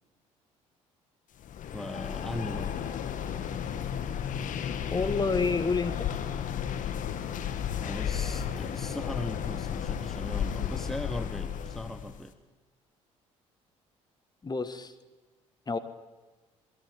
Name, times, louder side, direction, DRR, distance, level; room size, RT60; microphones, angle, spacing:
sound 1, 1.4-12.2, left 8 dB, 50° left, 1.8 m, -33 dB
voice 1, 1.7-2.7 7.8-12.3, left 1 dB, ahead, 10 dB, 1.4 m, -38 dB
voice 2, 4.9-6.1 14.4-14.9 15.7-15.8, left 4 dB, 25° left, 10 dB, 1.7 m, -28 dB
27.5 x 19.5 x 5.3 m, 1.2 s
figure-of-eight pair, 55°, 17 cm